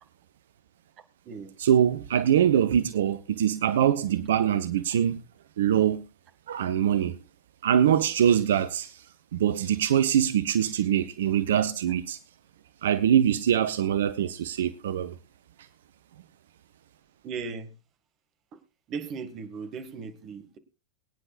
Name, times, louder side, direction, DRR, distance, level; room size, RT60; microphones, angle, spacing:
voice 1, 1.6-5.2 5.6-6.0 6.5-7.2 7.6-9.1 9.3-12.2 12.8-15.2, right 9 dB, 60° right, 0.6 m, -23 dB
voice 2, 17.2-17.7 18.9-20.6, right 5 dB, 35° right, 1.9 m, -37 dB
23.0 x 9.7 x 2.5 m
figure-of-eight pair, 90°, 0 cm